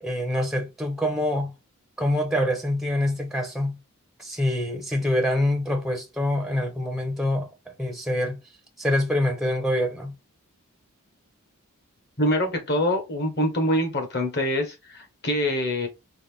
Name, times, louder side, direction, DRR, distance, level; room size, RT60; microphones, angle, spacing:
voice 1, 0.0-1.5 2.0-3.8 4.2-7.5 7.8-8.4 8.8-10.1, left 1 dB, ahead, 0.6 m, -25 dB
voice 2, 12.2-15.9, equal, 50° left, 1.3 m, -25 dB
4.0 x 3.0 x 3.4 m
head